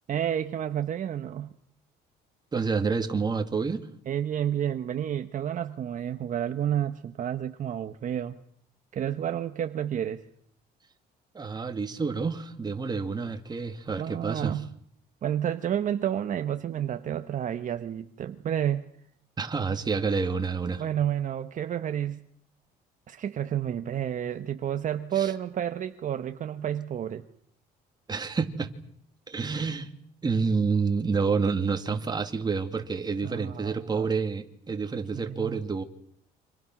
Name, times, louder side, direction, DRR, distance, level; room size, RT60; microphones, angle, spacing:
voice 1, 0.1-1.5 4.1-8.3 8.9-10.2 14.0-14.7 15.2-18.9 20.8-22.2 23.1-27.3 33.2-34.1 35.1-35.6, right 10 dB, 50° right, 8 dB, 1.3 m, -30 dB
voice 2, 2.5-3.9 11.3-14.6 19.4-20.8 25.2-25.3 28.1-28.7 29.3-29.9 30.2-35.8, right 5 dB, 25° right, 6 dB, 2.5 m, -28 dB
29.5 x 26.0 x 6.2 m, 0.67 s
cardioid pair, 110°, 17 cm